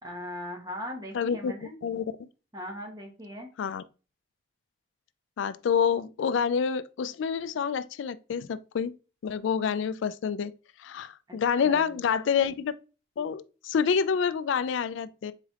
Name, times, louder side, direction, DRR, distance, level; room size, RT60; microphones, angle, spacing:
voice 1, 0.0-1.8 2.5-3.5 11.3-11.9, equal, 20° right, 1.0 m, -39 dB
voice 2, 1.1-1.5 1.8-2.3 3.6-3.8 5.4-8.9 9.2-10.5 10.8-12.7 13.2-15.3, left 6 dB, 80° left, 0.3 m, -28 dB
4.1 x 3.3 x 3.6 m
head